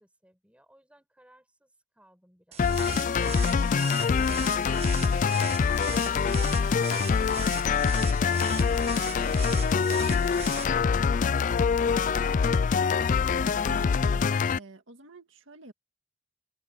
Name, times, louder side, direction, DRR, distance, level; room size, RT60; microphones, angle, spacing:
voice 1, 0.0-3.1, equal, 5° right, 4.9 m, -61 dB
sound 1, 2.5-10.6, right 8 dB, 30° right, 1.1 m, -40 dB
sound 2, 2.6-14.6, left 5 dB, 40° left, 0.3 m, -25 dB
voice 2, 13.4-15.7, right 2 dB, 65° right, 2.0 m, -48 dB
open air
head